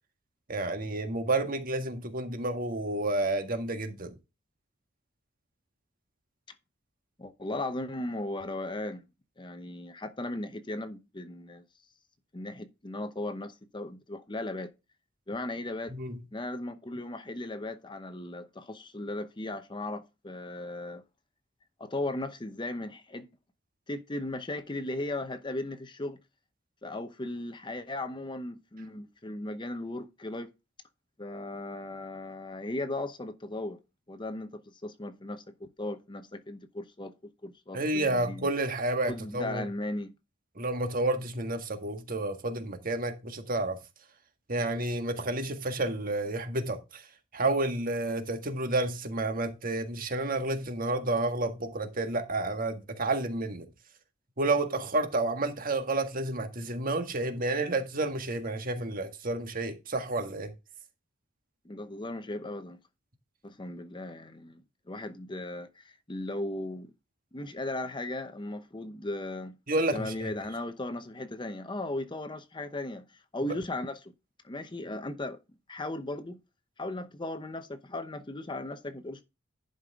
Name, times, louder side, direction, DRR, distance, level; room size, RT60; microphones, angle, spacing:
voice 1, 0.5-4.1 15.9-16.2 37.7-39.6 40.5-43.8 44.5-47.0 47.3-53.6 54.4-60.5 69.7-70.3 73.4-73.5, right 2 dB, 45° right, 1.6 m, -30 dB
voice 2, 7.2-9.0 9.4-11.6 12.3-14.7 15.3-15.9 16.3-21.0 21.8-23.3 23.9-26.2 26.8-30.5 31.2-33.8 34.1-37.1 37.4-38.5 39.1-40.1 61.6-62.8 63.4-64.6 64.9-66.9 67.3-69.6 69.9-74.1 74.4-75.4 75.7-76.4 76.8-79.2, left 2 dB, 25° left, 0.8 m, -37 dB
11.0 x 5.5 x 3.6 m
head